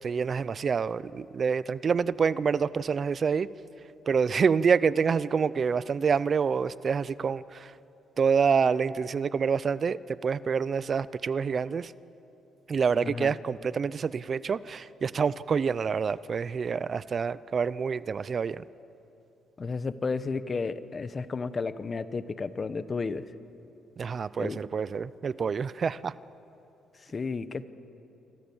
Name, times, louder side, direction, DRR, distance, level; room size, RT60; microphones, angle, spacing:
voice 1, 0.0-3.5 4.1-7.7 8.2-11.9 12.7-18.6 24.0-26.1, right 6 dB, 45° right, 18 dB, 0.5 m, -27 dB
voice 2, 13.0-13.3 19.6-23.3 24.4-24.6 27.0-27.6, left 4 dB, 35° left, 13 dB, 1.1 m, -32 dB
27.5 x 25.0 x 7.2 m, 2.9 s
cardioid pair, 90°, 0 cm